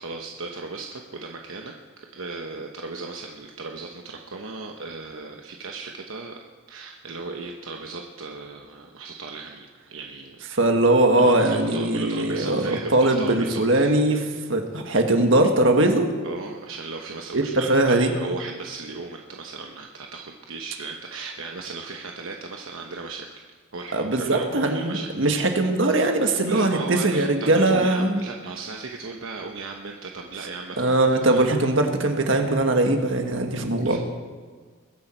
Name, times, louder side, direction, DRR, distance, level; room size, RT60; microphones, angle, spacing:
voice 1, 0.0-6.4 6.7-10.4 11.2-13.9 14.2-14.3 16.2-23.4 23.7-25.4 25.9-26.0 26.5-31.5 33.8-34.0, right 3 dB, 85° right, 2 dB, 1.0 m, -36 dB
voice 2, 10.5-16.1 17.3-18.1 23.9-28.2 30.8-34.0, right 2 dB, 70° right, 4 dB, 1.6 m, -21 dB
22.0 x 10.0 x 4.5 m, 1.5 s
head